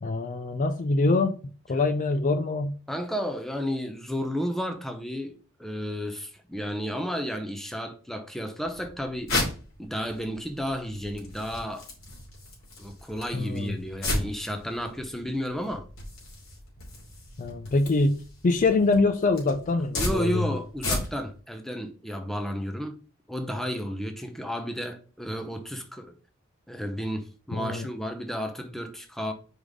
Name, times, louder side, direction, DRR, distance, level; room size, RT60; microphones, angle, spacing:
voice 1, 0.0-1.4 1.7-2.7 13.3-13.8 17.4-20.5 27.5-27.9, left 3 dB, 40° left, 0.4 m, -24 dB
voice 2, 2.9-5.3 5.6-9.3 9.8-11.9 12.8-15.9 19.9-23.0 23.3-26.1 26.7-29.3, equal, ahead, 0.7 m, -32 dB
sound 1, 8.6-21.4, left 2 dB, 85° left, 2.7 m, -35 dB
4.9 x 4.0 x 4.8 m
head